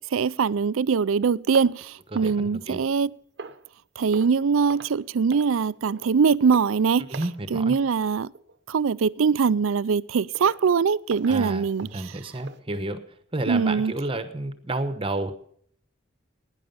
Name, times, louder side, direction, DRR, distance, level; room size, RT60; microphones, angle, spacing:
voice 1, 0.1-3.1 4.0-7.2 7.5-8.3 8.7-11.9 13.5-13.9, right 5 dB, 90° right, 0.4 m, -22 dB
sound 1, 1.5-3.0 3.4-3.7 4.1-4.4 4.7-5.0 5.3-5.6 5.9-6.1 6.5-6.8 7.1-7.4 7.7-7.9 8.3-8.6 9.1-9.2 9.7-9.8 10.3-10.7 11.1-12.6, right 4 dB, 55° right, 0.9 m, -43 dB
voice 2, 2.2-2.8 7.1-7.7 11.3-13.0 13.3-15.3, right 2 dB, 25° right, 1.0 m, -30 dB
17.0 x 10.0 x 5.5 m
head